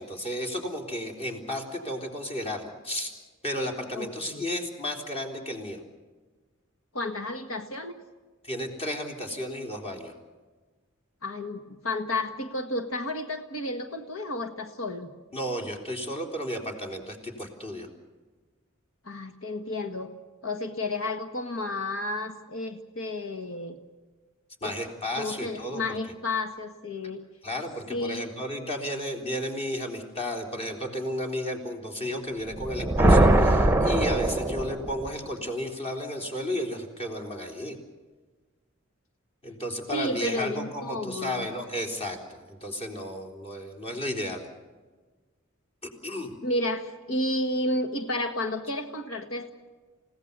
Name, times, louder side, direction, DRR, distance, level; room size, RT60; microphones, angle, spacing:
voice 1, 0.0-3.1 3.4-5.8 8.4-10.1 15.3-17.9 24.6-25.8 27.4-37.8 39.4-44.5 45.8-46.3, equal, 30° left, 3 dB, 3.7 m, -33 dB
voice 2, 3.9-4.4 6.9-8.0 11.2-15.1 19.0-20.1 20.4-23.8 24.6-24.7 25.2-27.2 27.9-28.3 39.9-41.5 46.4-49.5, left 2 dB, 90° left, 6 dB, 1.7 m, -32 dB
sound 1, 32.5-35.1, right 1 dB, 10° right, 0.9 m, -21 dB
29.0 x 17.5 x 6.8 m, 1.3 s
head